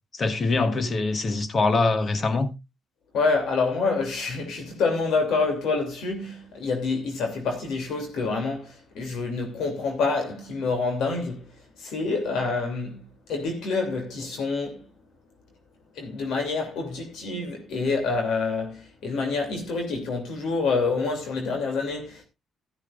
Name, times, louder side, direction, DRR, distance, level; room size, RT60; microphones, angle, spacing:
voice 1, 0.1-2.5, left 3 dB, 40° left, 1.4 m, -23 dB
voice 2, 3.1-11.5 11.8-13.0 13.3-14.8 16.0-22.2, left 4 dB, 80° left, 2.8 m, -27 dB
13.0 x 13.0 x 2.5 m
cardioid pair, 90°, 0 cm